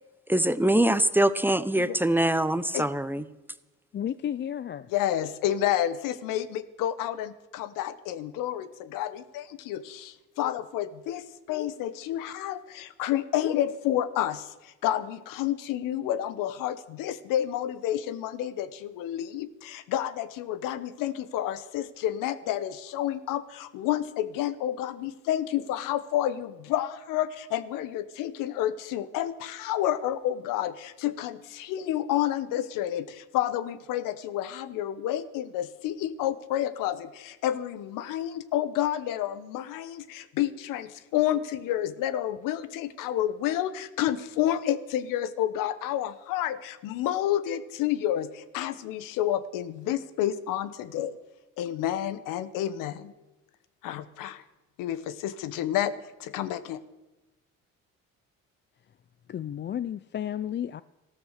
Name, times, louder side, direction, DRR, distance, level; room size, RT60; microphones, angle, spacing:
voice 1, 0.3-3.2, right 1 dB, 5° right, 14 dB, 0.8 m, -23 dB
voice 2, 3.9-4.9 59.3-60.8, left 10 dB, 35° left, 16 dB, 0.5 m, -32 dB
voice 3, 4.9-51.2 51.6-53.1 53.8-54.4 54.8-55.9 56.2-56.8, left 12 dB, 75° left, 15 dB, 1.0 m, -30 dB
14.5 x 13.0 x 6.5 m, 1.1 s
supercardioid pair, 70°, 32 cm